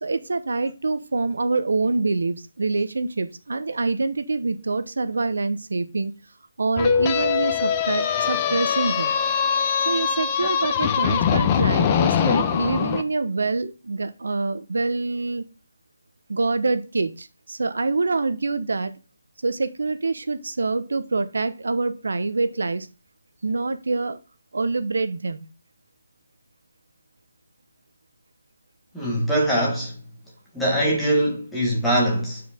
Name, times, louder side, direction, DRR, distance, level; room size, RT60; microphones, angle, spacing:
voice 1, 0.0-6.1 6.6-9.1 9.8-15.5 16.3-19.0 19.4-22.9 23.4-24.2 24.5-25.5, right 3 dB, 80° right, 0.8 m, -25 dB
sound 1, 6.8-13.0, left 7 dB, 20° left, 0.5 m, -22 dB
voice 2, 28.9-30.0 30.5-32.4, right 1 dB, ahead, 1.5 m, -22 dB
8.1 x 4.7 x 3.6 m
hypercardioid pair, 170°, 0 cm